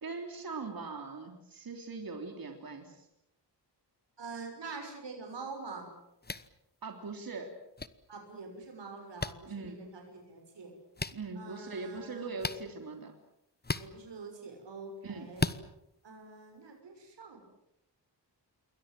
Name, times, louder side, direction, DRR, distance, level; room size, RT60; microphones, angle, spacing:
voice 1, 0.0-3.1 6.8-7.5 9.5-9.9 11.1-13.1 15.0-15.3, right 4 dB, 55° right, 4 dB, 3.4 m, -41 dB
voice 2, 4.2-5.9 8.1-10.7 11.4-12.3 13.8-15.5 16.0-17.5, right 4 dB, 85° right, 3 dB, 6.2 m, -45 dB
sound 1, 6.2-6.5 7.8-7.9 9.2-9.3 11.0-11.1 12.4-12.6 13.6-13.9 15.4-15.6, left 3 dB, 25° left, 1.1 m, -33 dB
28.0 x 22.5 x 7.7 m, 0.84 s
wide cardioid pair, 105°, 42 cm